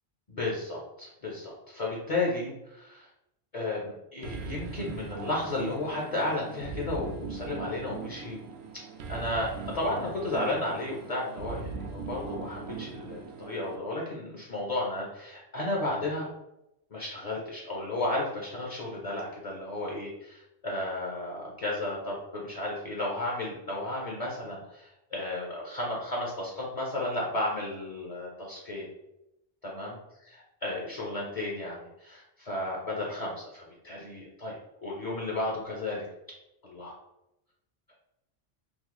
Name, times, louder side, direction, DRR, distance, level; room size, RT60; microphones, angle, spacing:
voice 1, 0.3-3.1 3.5-8.4 9.1-16.3 16.9-28.9 29.6-30.0 30.3-36.1 36.6-36.9, left 2 dB, 40° left, -3 dB, 0.8 m, -33 dB
sound 1, 4.2-13.8, right 4 dB, 80° right, 0.8 m, -40 dB
3.0 x 2.6 x 3.9 m, 0.87 s
omnidirectional pair, 1.1 m